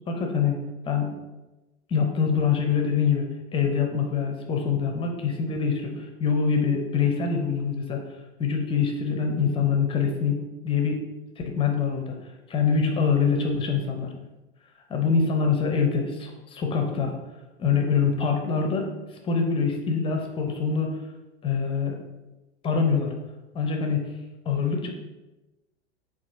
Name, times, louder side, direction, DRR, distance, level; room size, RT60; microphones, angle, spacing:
voice 1, 0.1-0.6 0.8-1.1 1.9-3.3 3.5-8.0 8.4-10.4 10.6-11.0 11.5-12.2 12.5-14.1 14.9-17.1 17.6-18.9 19.2-20.9 21.4-22.0 22.6-23.1 23.5-24.0 24.5-24.9, left 6 dB, 15° left, 2 dB, 0.5 m, -24 dB
6.9 x 2.4 x 2.6 m, 1.1 s
figure-of-eight pair, 90°, 33 cm